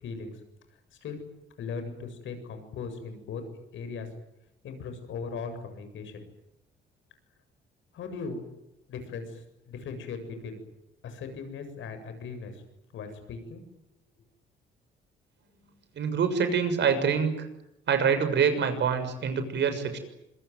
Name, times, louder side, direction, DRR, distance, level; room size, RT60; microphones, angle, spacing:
voice 1, 0.0-0.4 1.0-1.2 1.6-3.4 3.7-4.1 4.6-6.2 7.9-8.4 8.9-10.6 11.0-12.6 12.9-13.6, left 5 dB, 75° left, 8 dB, 7.6 m, -38 dB
voice 2, 15.9-17.5 17.9-20.0, right 6 dB, 65° right, 9 dB, 6.6 m, -25 dB
26.5 x 23.0 x 9.5 m, 0.83 s
cardioid pair, 90°, 20 cm